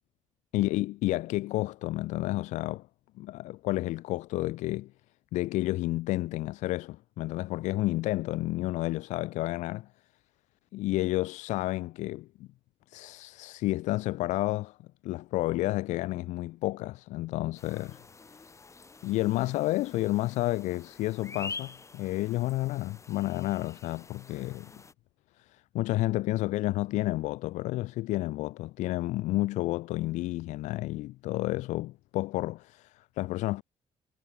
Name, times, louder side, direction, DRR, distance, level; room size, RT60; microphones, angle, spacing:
voice 1, 0.5-2.9 3.2-4.9 5.3-9.9 10.7-12.5 12.9-14.8 15.0-18.0 19.0-24.7 25.4-33.6, left 18 dB, 80° left, 0.5 m, -31 dB
sound 1, 17.6-24.9, left 4 dB, 25° left, 2.8 m, -47 dB
cardioid pair, 100°, 12 cm